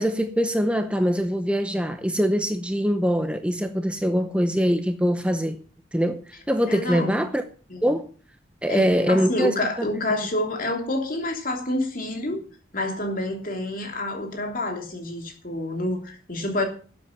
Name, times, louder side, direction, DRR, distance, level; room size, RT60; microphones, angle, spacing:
voice 1, 0.0-5.6 5.9-7.4 7.8-8.1 8.6-9.9, equal, 5° right, 0.8 m, -23 dB
voice 2, 6.7-7.3 7.7-7.9 8.7-12.5 12.7-16.6, left 1 dB, 50° left, 3.1 m, -28 dB
13.0 x 8.3 x 5.9 m
head